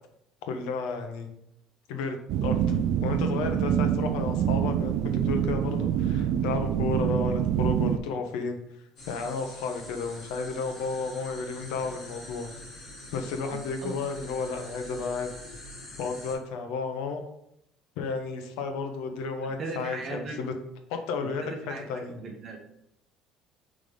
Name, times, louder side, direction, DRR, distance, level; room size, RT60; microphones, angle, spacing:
voice 1, 0.5-1.3 1.9-2.2 2.4-8.6 9.1-12.5 13.1-15.3 16.0-17.2 18.0-20.5 20.9-22.2, left 4 dB, 85° left, 5 dB, 0.9 m, -32 dB
sound 1, 2.3-8.0, right 9 dB, 55° right, 0.3 m, -26 dB
sound 2, 9.0-16.3, left 1 dB, 45° left, 2.0 m, -45 dB
voice 2, 19.6-20.4 21.4-22.6, right 3 dB, 30° right, 2 dB, 1.0 m, -37 dB
5.2 x 3.7 x 4.9 m, 0.76 s
cardioid pair, 170°, 0 cm